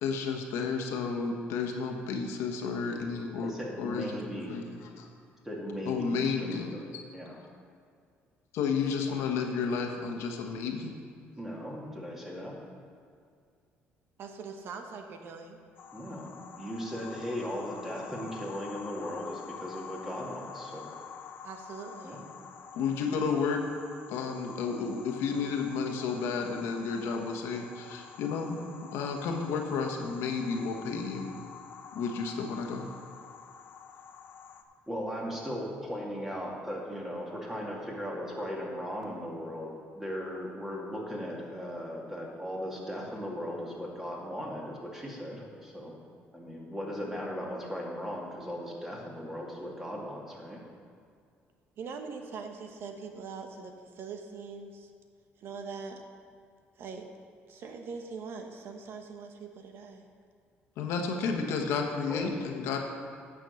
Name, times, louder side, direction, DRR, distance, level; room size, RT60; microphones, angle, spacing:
voice 1, 0.0-3.5 3.8-4.6 5.0-5.1 5.8-6.8 8.5-10.9 22.7-23.6 24.1-31.3 31.9-32.8 60.8-62.9, left 5 dB, 80° left, 3 dB, 1.3 m, -32 dB
voice 2, 3.4-4.6 5.4-7.4 11.4-12.6 15.9-20.9 22.0-22.2 34.9-46.0 46.3-50.6 62.1-62.3, equal, 10° right, -3 dB, 2.3 m, -38 dB
voice 3, 14.2-15.6 21.4-22.2 51.8-54.9 55.4-56.0 56.8-57.1 57.5-60.1, right 5 dB, 60° right, 5 dB, 1.0 m, -42 dB
sound 1, 15.8-34.6, left 6 dB, 50° left, 0.7 m, -47 dB
9.3 x 6.4 x 7.1 m, 2.2 s
cardioid pair, 105°, 4 cm